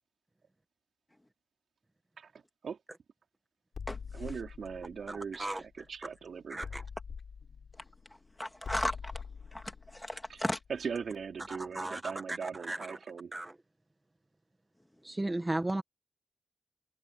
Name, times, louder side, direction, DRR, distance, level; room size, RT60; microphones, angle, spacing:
sound 1, 3.7-6.1 6.6-11.3, left 6 dB, 75° left, 4.9 m, -45 dB
voice 1, 4.1-6.7 10.3-10.4 10.7-13.3, right 6 dB, 85° right, 3.5 m, -40 dB
voice 2, 5.1-5.6 6.5-6.8 11.6-13.0 13.3-13.5 15.0-15.8, right 2 dB, 15° right, 1.1 m, -35 dB
voice 3, 8.4-9.1 9.5-10.6, left 1 dB, 10° left, 2.1 m, -35 dB
wide cardioid pair, 170°, 0 cm